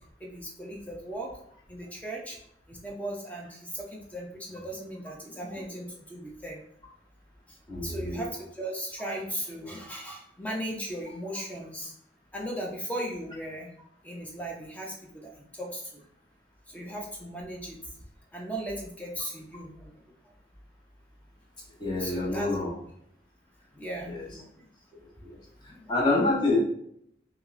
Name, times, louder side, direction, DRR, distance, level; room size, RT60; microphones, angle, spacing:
voice 1, 0.2-1.3 1.7-2.4 2.7-6.6 7.8-11.9 12.3-13.7 14.0-16.0 16.7-17.8 18.3-19.9 22.0-22.5 23.7-24.5 25.8-25.9 26.2-26.3, right 1 dB, 10° left, -1 dB, 0.5 m, -37 dB
voice 2, 7.7-8.2 21.8-22.7 24.0-24.2 25.2-25.3 25.6-26.6, left 2 dB, 25° left, -4 dB, 0.9 m, -27 dB
5.5 x 2.0 x 2.5 m, 0.72 s
head